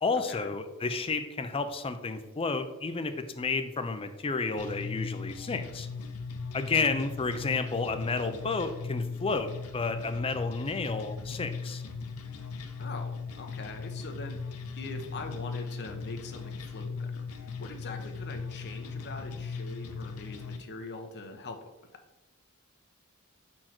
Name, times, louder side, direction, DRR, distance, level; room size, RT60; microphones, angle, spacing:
voice 1, 0.0-5.9 6.5-11.8, left 4 dB, 25° left, 9 dB, 0.5 m, -31 dB
sound 1, 4.6-20.6, left 4 dB, 85° left, 0.7 m, -38 dB
voice 2, 12.8-21.6, left 3 dB, 50° left, 5 dB, 0.8 m, -43 dB
4.5 x 4.5 x 5.9 m, 1.0 s
head